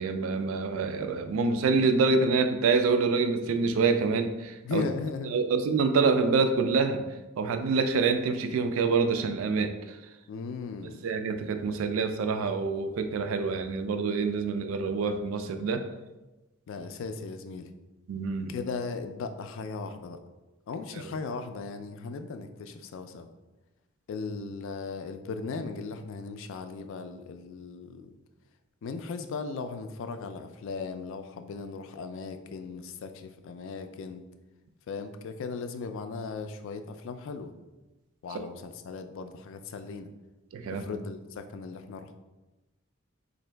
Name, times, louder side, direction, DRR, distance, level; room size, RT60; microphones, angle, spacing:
voice 1, 0.0-4.8 5.3-7.0 7.4-10.0 11.0-15.8 18.1-18.5 40.5-40.8, right 4 dB, 70° right, 8 dB, 0.3 m, -26 dB
voice 2, 4.6-5.4 10.3-11.0 16.7-17.7 18.5-20.2 20.7-23.3 24.1-28.1 28.8-34.2 34.9-37.5 38.2-40.1 40.7-42.1, left 4 dB, 65° left, 8 dB, 0.3 m, -37 dB
3.7 x 2.5 x 3.2 m, 1.1 s
head